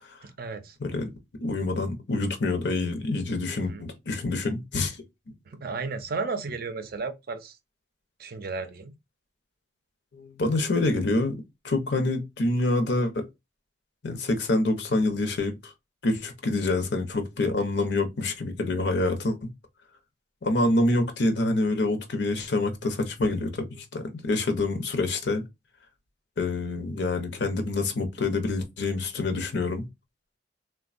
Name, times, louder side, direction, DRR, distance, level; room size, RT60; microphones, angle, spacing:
voice 1, 0.2-0.7 3.5-3.8 5.5-7.6 8.2-8.9 16.6-16.7, right 4 dB, 50° right, 0.5 m, -34 dB
voice 2, 1.4-5.0 10.1-13.3 14.0-15.7 16.0-19.5 20.4-25.4 26.4-29.8, left 2 dB, 65° left, 0.7 m, -26 dB
3.4 x 2.2 x 2.4 m
head